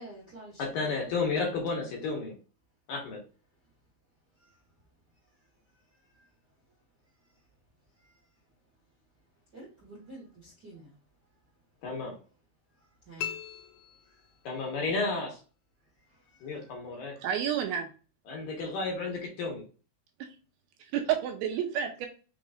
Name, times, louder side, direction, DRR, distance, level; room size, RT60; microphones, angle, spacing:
voice 1, 0.0-1.2 4.4-4.5 6.0-6.3 8.0-8.2 9.5-11.0 12.8-13.3 14.0-14.2 16.0-16.8, right 2 dB, 55° right, -7 dB, 1.2 m, -50 dB
voice 2, 0.6-2.3 2.9-3.2 11.8-12.1 14.5-15.4 16.4-17.1 18.3-19.6, left 3 dB, 70° left, 0 dB, 2.5 m, -32 dB
sound 1, 13.2-14.7, left 11 dB, 90° left, 2.7 m, -40 dB
voice 3, 17.2-17.9 20.9-22.1, right 9 dB, 80° right, 5 dB, 2.4 m, -29 dB
6.1 x 3.1 x 2.4 m, 0.35 s
omnidirectional pair, 4.7 m